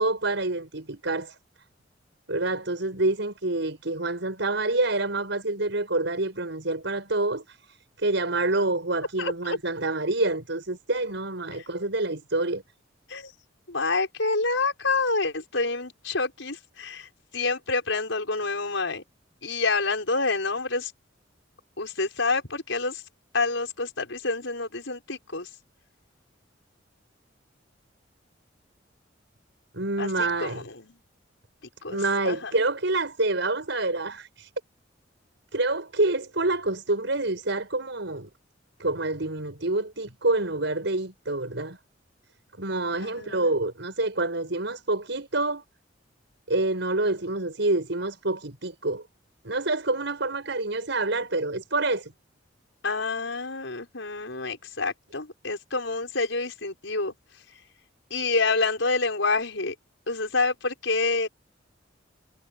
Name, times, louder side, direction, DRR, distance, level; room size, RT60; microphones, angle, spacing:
voice 1, 0.0-1.4 2.3-12.6 29.7-30.6 31.9-34.5 35.5-38.3 38.8-41.8 42.6-45.6 46.5-49.0 49.4-52.1, right 2 dB, 70° right, 7.5 m, -27 dB
voice 2, 9.2-9.6 11.5-11.6 13.1-13.3 13.7-19.0 19.4-20.9 21.8-23.0 23.3-25.5 30.0-31.0 31.8-32.5 43.0-43.5 52.8-57.1 58.1-59.7 60.1-61.3, left 3 dB, 75° left, 6.4 m, -28 dB
head